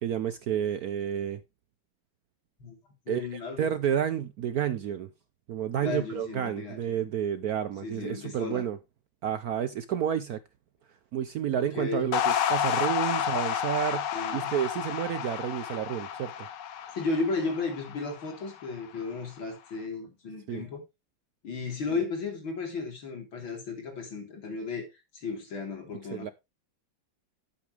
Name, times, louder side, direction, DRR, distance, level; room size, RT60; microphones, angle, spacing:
voice 1, 0.0-1.4 3.1-5.1 5.5-8.8 9.2-10.4 11.1-16.5 20.5-20.7 26.1-26.3, right 9 dB, 65° right, 0.9 m, -30 dB
voice 2, 3.1-3.7 5.8-7.0 7.8-8.6 11.6-12.2 13.2-13.3 14.1-14.5 16.9-20.8 21.4-24.9 25.1-26.3, left 4 dB, 90° left, 4.3 m, -34 dB
sound 1, 12.1-18.6, left 9 dB, 65° left, 1.5 m, -30 dB
11.5 x 8.5 x 3.3 m
omnidirectional pair, 2.1 m